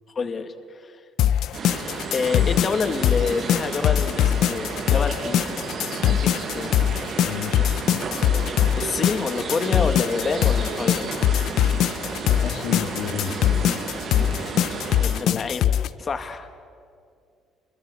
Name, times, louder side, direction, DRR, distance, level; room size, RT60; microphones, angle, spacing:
voice 1, 0.2-0.9 2.1-5.5 6.0-6.8 8.8-11.1 15.0-16.5, left 5 dB, 30° left, 7 dB, 1.9 m, -28 dB
sound 1, 1.2-15.9, left 11 dB, 65° left, 0.7 m, -22 dB
sound 2, 1.5-15.2, right 4 dB, 50° right, 7.9 m, -32 dB
voice 2, 7.3-7.6 12.2-13.4, left 9 dB, 85° left, 7 dB, 2.0 m, -31 dB
29.0 x 23.5 x 8.4 m, 2.3 s
cardioid pair, 135°, 0 cm